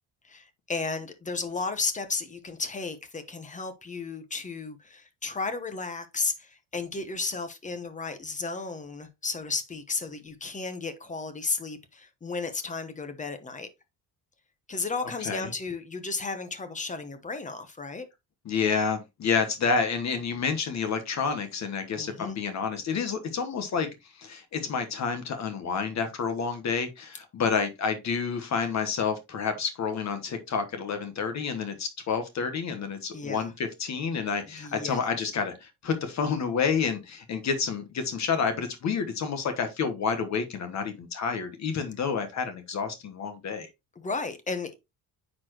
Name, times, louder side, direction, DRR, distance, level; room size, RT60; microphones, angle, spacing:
voice 1, 0.2-13.7 14.7-18.1 21.9-22.4 33.1-33.5 34.6-35.1 44.0-44.7, left 4 dB, 20° left, 1.0 m, -34 dB
voice 2, 18.4-23.9 24.2-43.7, left 5 dB, 45° left, 1.3 m, -29 dB
9.4 x 4.4 x 3.0 m
cardioid pair, 145°, 39 cm